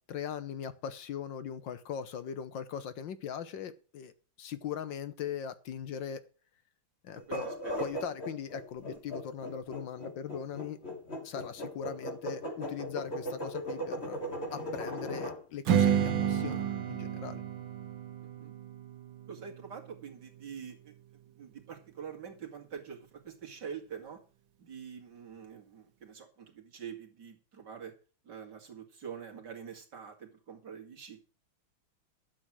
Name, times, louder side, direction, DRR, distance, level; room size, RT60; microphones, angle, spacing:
voice 1, 0.0-4.1 4.4-6.2 7.0-7.5 7.8-10.8 11.2-14.2 14.5-17.4, left 8 dB, 65° left, 1.6 m, -40 dB
sound 1, 7.2-15.4, equal, 30° left, 3.3 m, -38 dB
voice 2, 7.3-7.9 18.4-18.5 19.3-20.9 21.3-24.2 24.6-27.9 28.2-31.2, right 7 dB, 55° right, 2.7 m, -45 dB
Strum, 15.7-20.9, right 9 dB, 75° right, 1.8 m, -32 dB
12.0 x 7.5 x 6.0 m
omnidirectional pair, 2.2 m